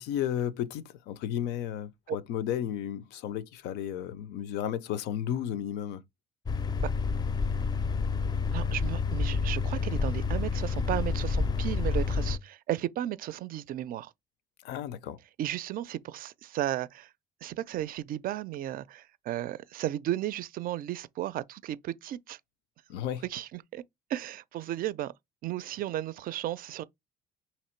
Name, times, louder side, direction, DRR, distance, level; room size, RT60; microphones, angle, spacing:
voice 1, 0.0-6.0 14.6-15.2 22.9-23.2, left 10 dB, 85° left, 0.5 m, -33 dB
sound 1, 6.5-12.4, left 4 dB, 25° left, 0.4 m, -29 dB
voice 2, 8.5-14.1 15.4-17.1 17.4-22.4 23.2-23.8 24.1-25.1 25.4-26.8, right 13 dB, 60° right, 0.4 m, -34 dB
3.0 x 2.9 x 4.3 m
cardioid pair, 110°, 17 cm